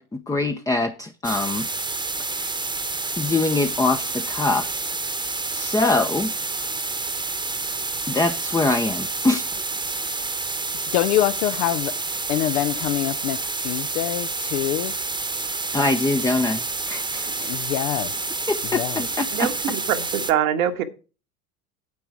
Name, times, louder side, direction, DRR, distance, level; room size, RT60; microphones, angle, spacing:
voice 1, 0.0-1.7 2.2-2.5 3.2-4.8 5.5-6.3 8.1-9.6 15.7-17.6 18.5-19.5, left 2 dB, 10° left, 0.7 m, -24 dB
sound 1, 1.2-20.3, right 3 dB, 10° right, 1.1 m, -29 dB
voice 2, 10.9-12.0 12.3-14.9 17.2-18.2 18.7-19.0, left 14 dB, 55° left, 0.7 m, -25 dB
voice 3, 19.3-20.8, right 10 dB, 65° right, 1.6 m, -23 dB
9.6 x 8.0 x 4.8 m
figure-of-eight pair, 75°, 44 cm